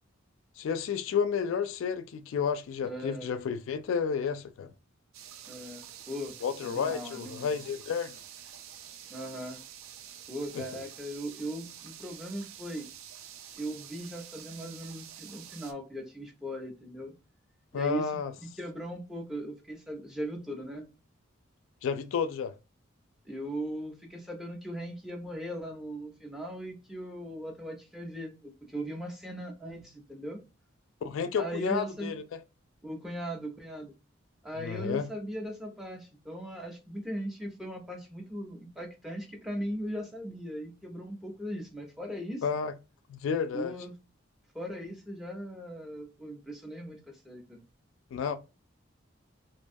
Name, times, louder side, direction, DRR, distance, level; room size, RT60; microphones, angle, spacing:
voice 1, 0.6-4.7 6.4-8.2 17.7-18.3 21.8-22.5 31.0-32.4 34.6-35.1 42.4-42.7 43.1-43.7 48.1-48.4, left 6 dB, 75° left, 0.3 m, -31 dB
voice 2, 2.8-3.4 5.5-6.4 6.6-7.6 9.1-9.6 10.3-12.9 13.6-17.1 17.7-18.1 18.4-20.8 23.2-30.4 31.4-32.1 32.8-33.9 34.4-42.4 43.5-43.9 44.5-47.6, equal, ahead, 0.6 m, -38 dB
sound 1, 5.1-15.7, right 10 dB, 85° right, 0.4 m, -48 dB
2.5 x 2.2 x 2.5 m
head